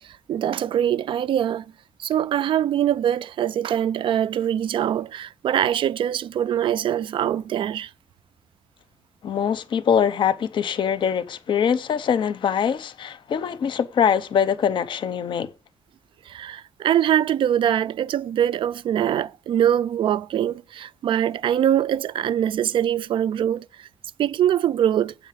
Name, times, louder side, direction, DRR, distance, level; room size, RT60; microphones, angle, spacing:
voice 1, 0.3-1.7 2.0-7.9 16.3-23.9 24.2-25.1, right 10 dB, 75° right, 0.4 m, -23 dB
voice 2, 9.2-15.5, left 7 dB, 65° left, 0.7 m, -23 dB
8.1 x 4.7 x 7.3 m
wide cardioid pair, 145°, 9 cm